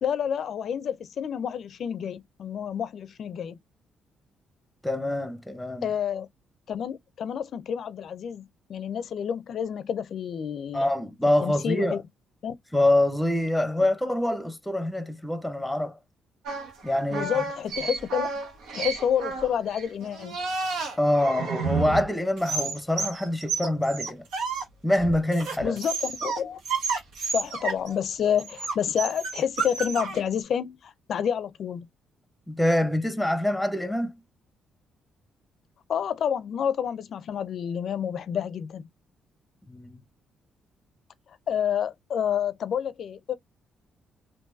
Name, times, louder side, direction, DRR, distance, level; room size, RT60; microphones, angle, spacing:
voice 1, 0.0-3.6 5.8-6.3 6.7-10.9 11.4-12.0 12.4-12.6 13.8-13.9 17.1-18.3 18.7-20.4 25.6-26.6 27.3-31.9 35.9-38.8 41.5-43.3, left 8 dB, 60° left, 0.4 m, -29 dB
voice 2, 4.8-5.9 10.7-12.0 12.7-16.0 16.8-17.3 21.0-24.3 24.8-25.8 32.5-34.1 39.7-40.0, left 1 dB, 5° left, 0.7 m, -25 dB
sound 1, 16.5-22.1 22.4-24.6 24.9-26.4 26.7-28.0 28.4-30.2, right 4 dB, 90° right, 1.1 m, -31 dB
3.8 x 2.6 x 2.5 m
cardioid pair, 90°, 0 cm